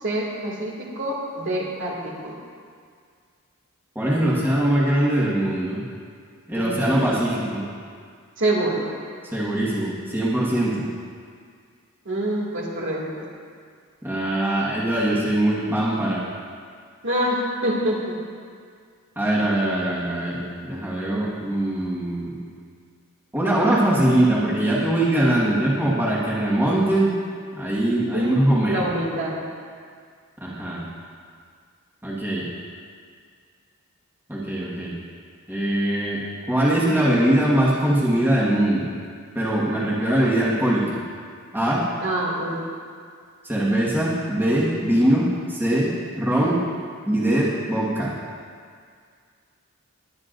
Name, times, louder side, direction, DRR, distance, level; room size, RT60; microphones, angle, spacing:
voice 1, 0.0-2.3 6.5-7.2 8.4-8.9 12.1-13.3 17.0-18.1 28.1-29.4 42.0-42.7, right 1 dB, 60° right, -4 dB, 2.3 m, -26 dB
voice 2, 3.9-5.8 6.5-7.6 9.3-10.9 14.0-16.2 19.1-22.4 23.3-27.1 27.5-28.8 30.4-30.8 32.0-32.4 34.3-35.0 35.5-36.2 36.5-38.9 39.3-41.0 41.5-41.8 43.4-45.9 46.2-46.6 47.1-48.1, right 1 dB, 10° right, -7 dB, 1.6 m, -22 dB
20.5 x 9.6 x 2.6 m, 2.1 s
head